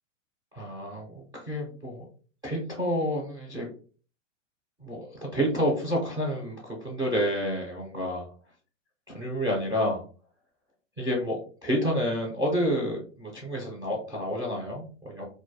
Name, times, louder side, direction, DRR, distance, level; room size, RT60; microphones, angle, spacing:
voice 1, 0.5-2.1 2.4-3.7 4.8-8.3 9.1-10.0 11.0-15.2, equal, 10° right, -4 dB, 0.5 m, -29 dB
2.2 x 2.1 x 2.7 m, 0.40 s
hypercardioid pair, 135°, 38 cm